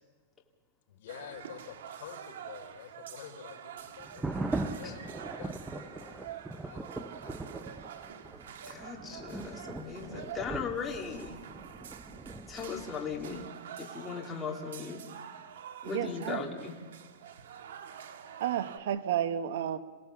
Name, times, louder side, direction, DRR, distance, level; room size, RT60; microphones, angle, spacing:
voice 1, 0.9-7.2, left 9 dB, 50° left, 3 dB, 3.7 m, -49 dB
sound 1, 1.1-18.8, right 9 dB, 80° right, 1.6 m, -47 dB
sound 2, 4.0-13.5, right 2 dB, 5° right, 0.6 m, -40 dB
voice 2, 8.7-11.4 12.5-13.5 13.8-15.0 15.8-16.8, left 5 dB, 10° left, -1 dB, 2.3 m, -38 dB
voice 3, 15.8-16.5 18.0-18.1 18.4-19.8, right 10 dB, 60° right, 11 dB, 1.1 m, -32 dB
28.0 x 17.0 x 7.2 m, 1.5 s
supercardioid pair, 170°, 0 cm